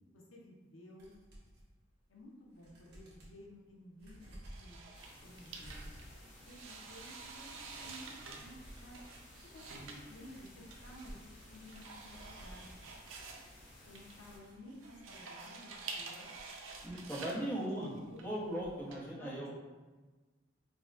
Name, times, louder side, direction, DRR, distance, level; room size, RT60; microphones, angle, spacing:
voice 1, 0.1-1.1 2.1-4.8 5.2-9.0 9.5-12.8 13.9-16.3 17.3-18.3 18.9-19.5, left 1 dB, 90° left, -2 dB, 0.7 m, -54 dB
sound 1, 1.0-1.6 2.2-2.3 2.5-3.4 4.0-17.1 17.4-17.5, right 1 dB, 60° right, 1.0 m, -57 dB
sound 2, 4.4-19.0, right 4 dB, 90° right, 0.5 m, -50 dB
sound 3, 4.9-14.4, left 1 dB, 45° left, 0.8 m, -57 dB
voice 2, 16.8-17.9 18.2-19.5, right 1 dB, 10° left, -7 dB, 0.8 m, -38 dB
5.0 x 2.2 x 2.4 m, 1.3 s
head